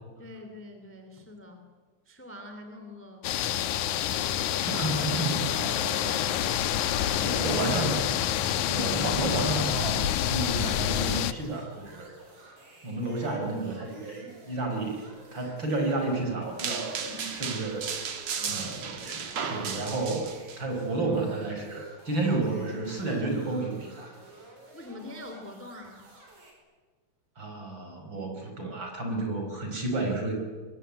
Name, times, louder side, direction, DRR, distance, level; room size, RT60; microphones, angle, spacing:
voice 1, 0.2-1.7 2.1-3.4 6.9-7.6 17.1-17.4 18.3-18.7 24.7-26.1, left 1 dB, 5° left, 5 dB, 2.5 m, -45 dB
sound 1, 3.2-11.3, left 11 dB, 80° left, 2.4 m, -27 dB
voice 2, 4.6-6.4 7.2-8.1 8.5-12.1 12.8-15.0 15.3-17.8 18.5-20.3 20.6-24.1 27.4-30.3, right 2 dB, 35° right, 3 dB, 5.7 m, -31 dB
sound 2, 9.3-26.5, right 2 dB, 80° right, 7.2 m, -52 dB
sound 3, 16.6-20.6, right 6 dB, 60° right, 3.3 m, -34 dB
25.0 x 22.0 x 9.8 m, 1.5 s
omnidirectional pair, 3.5 m